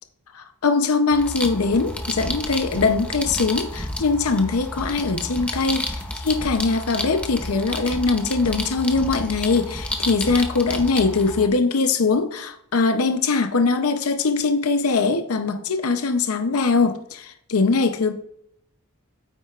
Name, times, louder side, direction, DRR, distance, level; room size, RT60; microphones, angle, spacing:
voice 1, 0.3-18.1, left 4 dB, 90° left, 0.7 m, -22 dB
sound 1, 1.1-11.5, left 1 dB, 5° left, 0.7 m, -31 dB
9.1 x 7.8 x 2.4 m
head